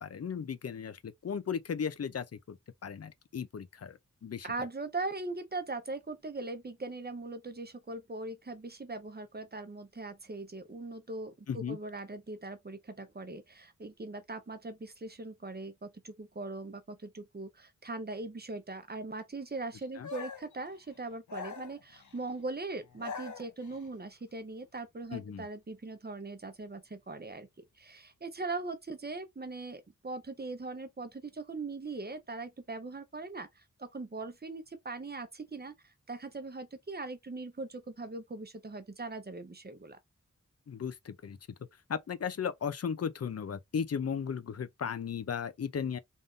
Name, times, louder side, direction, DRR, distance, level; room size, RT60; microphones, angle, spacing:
voice 1, 0.0-4.5 11.5-11.8 20.0-20.1 25.1-25.5 40.7-41.4 41.9-46.0, left 7 dB, 50° left, 0.6 m, -36 dB
voice 2, 4.4-27.5 27.8-40.0, right 3 dB, 30° right, 0.9 m, -40 dB
sound 1, 20.0-20.6 21.3-22.2 22.8-23.9, left 5 dB, 70° left, 0.9 m, -43 dB
3.6 x 2.6 x 3.6 m
wide cardioid pair, 80°, 31 cm